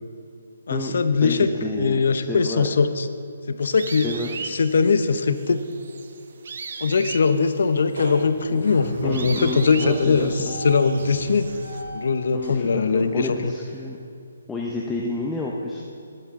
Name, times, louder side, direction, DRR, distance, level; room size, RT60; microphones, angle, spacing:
voice 1, 0.7-3.1 3.5-4.1 4.4-5.6 6.8-10.3 10.6-11.5 11.9-13.5, left 5 dB, 65° left, 10 dB, 0.8 m, -21 dB
voice 2, 1.2-2.7 4.0-4.4 8.5-8.6 9.0-10.6 12.3-14.0 14.5-15.8, left 2 dB, 5° left, -3 dB, 0.7 m, -30 dB
sound 1, 3.6-11.8, right 5 dB, 55° right, 0.9 m, -38 dB
sound 2, 7.2-7.6 7.9-14.0, equal, 85° right, 3.3 m, -36 dB
14.5 x 11.0 x 3.7 m, 2.4 s
hypercardioid pair, 160°, 0 cm